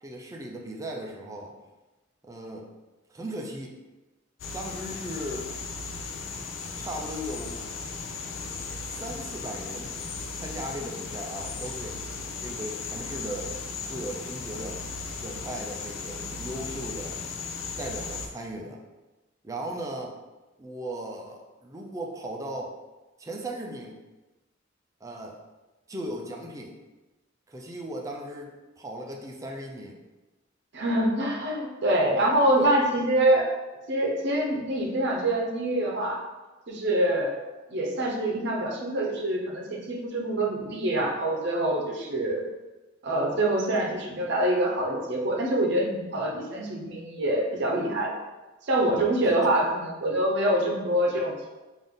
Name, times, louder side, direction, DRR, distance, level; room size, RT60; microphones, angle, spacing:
voice 1, 0.0-1.6 2.2-2.7 3.1-3.8 4.5-5.5 6.8-7.6 8.9-9.9 10.3-12.0 12.4-13.6 13.9-14.8 15.1-17.2 17.8-18.8 19.4-20.2 20.6-22.8 23.2-24.0 25.0-25.4 25.9-26.8 27.5-30.0 32.6-32.7 49.4-49.5, right 1 dB, 15° right, 0 dB, 0.4 m, -37 dB
sound 1, 4.4-18.3, left 4 dB, 85° left, 0.5 m, -36 dB
voice 2, 30.7-33.6 33.9-36.2 36.7-37.4 37.7-42.4 43.0-48.2 48.7-51.5, right 1 dB, 60° right, -1 dB, 0.7 m, -25 dB
3.8 x 2.5 x 3.6 m, 1.1 s
head